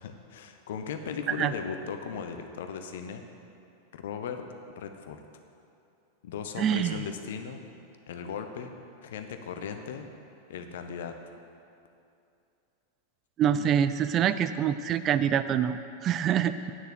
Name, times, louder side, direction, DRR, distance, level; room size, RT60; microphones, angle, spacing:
voice 1, 0.0-3.2 3.9-4.4 4.8-5.2 6.2-7.6 8.1-8.7 9.0-10.0 10.5-11.2, left 6 dB, 60° left, 6 dB, 0.9 m, -37 dB
voice 2, 6.6-7.0 13.4-16.7, right 9 dB, 30° right, 12 dB, 0.4 m, -26 dB
9.4 x 6.7 x 7.9 m, 2.6 s
figure-of-eight pair, 90°, 0 cm